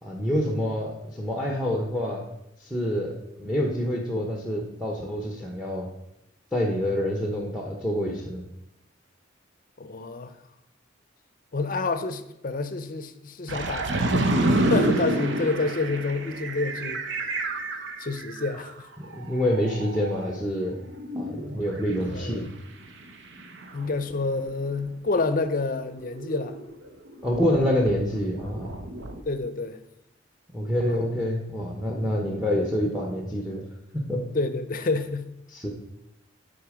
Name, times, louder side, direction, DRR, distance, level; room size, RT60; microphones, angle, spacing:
voice 1, 0.0-2.2 2.6-3.1 3.4-5.9 6.5-8.4 19.0-20.8 21.2-22.5 27.2-28.7 30.5-33.6 33.9-34.2 35.5-35.7, equal, 5° right, 0.9 m, -27 dB
voice 2, 9.8-10.3 11.5-17.0 18.0-18.9 22.0-22.5 23.7-26.6 29.2-29.8 30.9-31.0 32.0-32.2 34.3-35.3, left 3 dB, 45° left, 0.6 m, -29 dB
sound 1, 13.5-18.7 19.0-20.4 20.7-21.9 23.0-24.8 26.1-29.2, right 2 dB, 60° right, 0.8 m, -29 dB
10.5 x 4.2 x 5.0 m
head